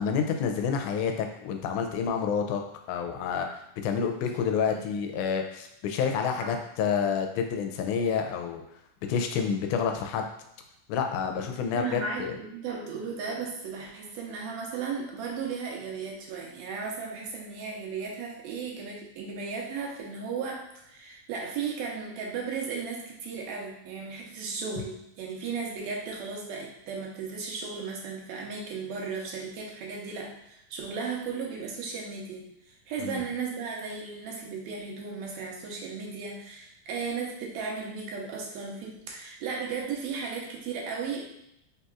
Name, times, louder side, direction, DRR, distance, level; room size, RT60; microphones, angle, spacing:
voice 1, 0.0-2.6 2.9-8.6 9.1-10.3 10.9-12.4 33.0-33.2, left 6 dB, 85° left, 4 dB, 2.0 m, -29 dB
voice 2, 11.7-32.4 32.9-41.3, right 5 dB, 75° right, -1 dB, 1.9 m, -35 dB
4.5 x 4.0 x 2.4 m, 0.79 s
omnidirectional pair, 3.5 m